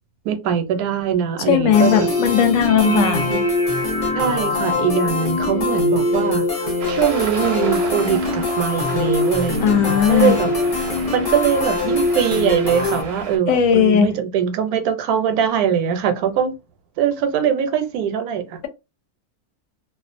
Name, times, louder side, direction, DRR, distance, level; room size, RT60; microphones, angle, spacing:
voice 1, 0.2-2.1 2.8-3.4 4.2-10.5 11.1-16.5 17.0-18.6, right 8 dB, 80° right, 1.1 m, -22 dB
voice 2, 1.5-3.3 9.6-10.4 13.5-14.1, left 8 dB, 70° left, 0.9 m, -17 dB
sound 1, 1.7-13.0, left 2 dB, 45° left, 0.5 m, -22 dB
Traffic noise roadway noise, 6.8-13.4, right 4 dB, 55° right, 0.7 m, -33 dB
2.4 x 2.3 x 2.4 m
omnidirectional pair, 1.6 m